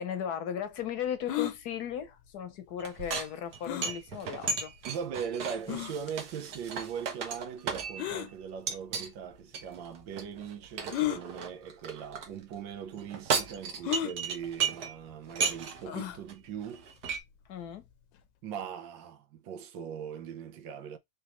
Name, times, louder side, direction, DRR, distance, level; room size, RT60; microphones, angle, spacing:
voice 1, 0.0-4.7 17.5-17.8, left 8 dB, 65° left, 1.2 m, -36 dB
sound 1, 1.3-1.6 3.6-3.9 4.7-4.8 5.7-5.9 8.0-8.3 9.3-9.4 10.9-11.2 12.1-12.3 12.6-12.7 13.8-14.1 15.8-16.2, left 13 dB, 90° left, 1.4 m, -32 dB
sound 2, 2.8-8.2 8.7-9.1 9.5-12.3 12.9-15.0 15.3-15.9 16.3-16.4 16.6-17.2, right 5 dB, 65° right, 1.5 m, -35 dB
voice 2, 4.9-16.9 18.4-21.0, right 7 dB, 85° right, 1.5 m, -40 dB
5.0 x 3.4 x 3.0 m
omnidirectional pair, 1.9 m